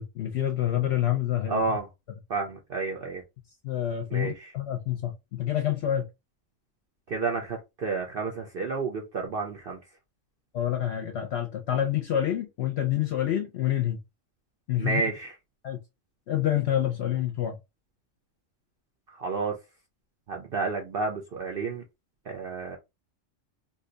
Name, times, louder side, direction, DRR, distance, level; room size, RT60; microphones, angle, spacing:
voice 1, 0.0-1.6 3.6-6.0 10.5-14.0 14.7-15.0 15.6-15.8 16.3-17.6, left 11 dB, 60° left, 0.8 m, -27 dB
voice 2, 1.5-1.9 2.3-3.2 4.1-4.5 7.1-9.8 14.8-15.3 19.1-19.5 20.3-21.8 22.3-22.8, right 4 dB, 55° right, 0.7 m, -30 dB
2.7 x 2.3 x 3.8 m
omnidirectional pair, 1.4 m